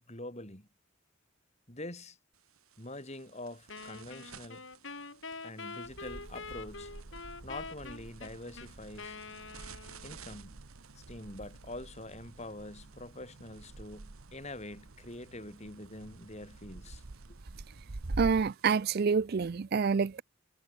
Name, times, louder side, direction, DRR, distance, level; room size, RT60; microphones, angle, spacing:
voice 1, 0.1-0.7 1.7-2.2 2.8-4.7 5.4-6.9 7.4-9.2 10.0-10.6 11.0-17.0 17.3-17.4, left 1 dB, 30° left, 5.3 m, -45 dB
sound 1, 2.3-18.9, right 7 dB, 90° right, 3.8 m, -58 dB
Wind instrument woodwind instrument, 3.7-10.3, left 4 dB, 60° left, 4.7 m, -45 dB
sound 2, 5.8-18.5, right 2 dB, 65° right, 1.0 m, -46 dB
voice 2, 18.2-20.2, right 5 dB, 45° right, 0.4 m, -27 dB
head